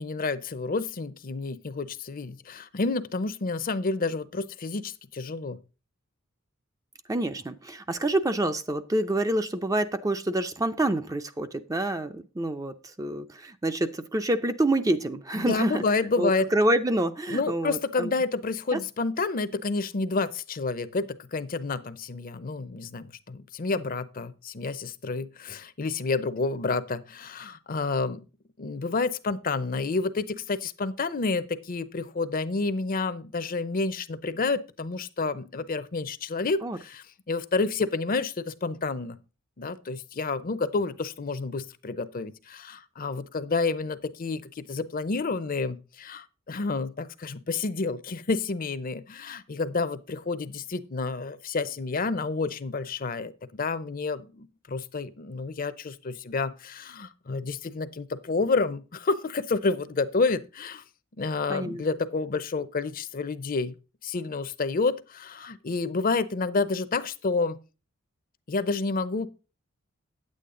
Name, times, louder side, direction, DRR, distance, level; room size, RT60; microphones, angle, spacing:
voice 1, 0.0-5.6 15.3-16.5 17.3-28.2 28.6-39.2 39.6-60.8 61.2-63.7 64.0-67.6 68.5-69.3, left 3 dB, 45° left, 0.6 m, -29 dB
voice 2, 7.1-15.8 16.2-18.1 18.7-18.8 36.6-36.8 61.5-61.8, right 1 dB, 15° right, 0.5 m, -27 dB
9.0 x 8.5 x 3.7 m
head